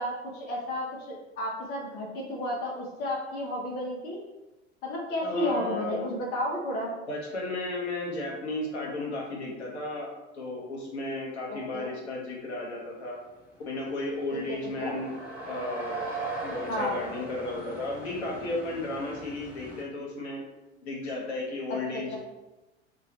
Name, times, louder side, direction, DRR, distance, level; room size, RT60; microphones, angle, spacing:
voice 1, 0.0-4.2 4.8-6.9 11.5-11.9 14.8-14.9 16.7-17.0, left 1 dB, 30° left, -3 dB, 0.5 m, -32 dB
voice 2, 5.2-6.0 7.1-10.1 10.3-13.2 13.7-15.1 15.4-15.9 16.4-20.4 20.8-22.2, left 2 dB, 65° left, -2 dB, 0.8 m, -34 dB
sound 1, 13.3-13.4 13.6-19.8, right 2 dB, 5° right, 0.7 m, -39 dB
2.3 x 2.2 x 2.7 m, 1.1 s
figure-of-eight pair, 80°, 35 cm